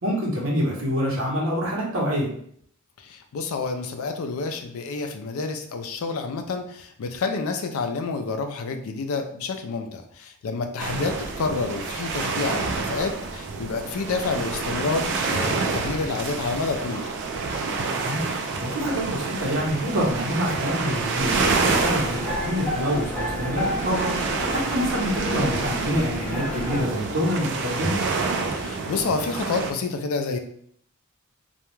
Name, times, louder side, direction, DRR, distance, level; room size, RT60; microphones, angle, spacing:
voice 1, 0.0-2.3 10.9-11.0 18.0-18.3 18.6-24.1 24.5-28.0, equal, 70° right, -3 dB, 0.9 m, -26 dB
voice 2, 3.0-17.1 28.6-30.4, left 4 dB, 80° left, 6 dB, 0.4 m, -29 dB
sound 1, 10.8-29.7, right 4 dB, 55° right, 0.3 m, -28 dB
sound 2, 21.2-26.8, equal, 5° left, 0.6 m, -30 dB
2.3 x 2.1 x 3.0 m, 0.64 s
head